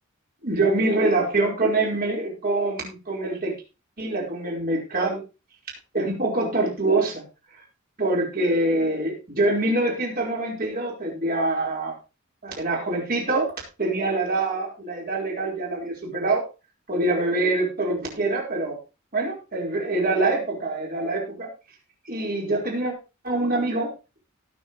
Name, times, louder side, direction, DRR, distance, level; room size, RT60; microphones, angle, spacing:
voice 1, 0.4-3.5 4.0-5.2 5.9-7.2 8.0-11.9 12.4-13.5 13.8-16.4 16.9-18.8 19.1-21.5 22.1-22.9 23.2-23.9, right 2 dB, 45° right, -2 dB, 4.9 m, -24 dB
18.5 x 6.7 x 3.2 m, 0.29 s
head